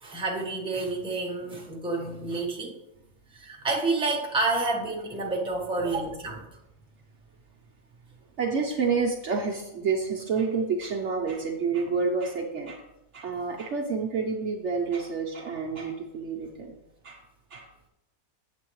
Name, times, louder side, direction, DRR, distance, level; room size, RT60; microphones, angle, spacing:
voice 1, 0.0-2.7 3.3-6.5, right 3 dB, 5° right, 0 dB, 1.0 m, -29 dB
voice 2, 8.4-12.8 13.1-16.8 17.0-17.2 17.5-17.7, right 5 dB, 60° right, 0 dB, 1.0 m, -29 dB
7.9 x 7.6 x 3.1 m, 0.90 s
omnidirectional pair, 1.6 m